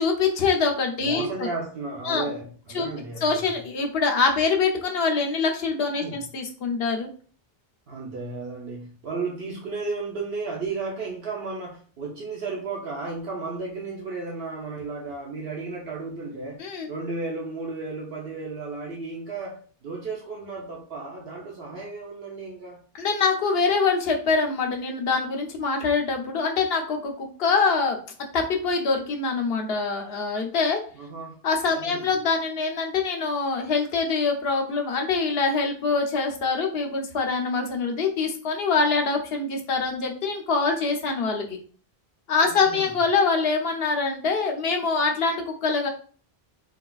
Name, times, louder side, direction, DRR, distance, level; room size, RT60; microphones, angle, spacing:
voice 1, 0.0-1.5 2.1-2.3 2.7-2.9 3.2-7.1 16.6-16.9 23.0-28.0 28.3-30.8 31.4-41.6 42.3-45.9, left 4 dB, 75° left, 3 dB, 0.9 m, -24 dB
voice 2, 1.0-3.6 6.0-6.2 7.9-22.8 31.0-31.4 31.8-32.0 42.5-42.9, right 3 dB, 75° right, -2 dB, 0.9 m, -34 dB
3.8 x 2.3 x 2.3 m, 0.42 s
omnidirectional pair, 1.0 m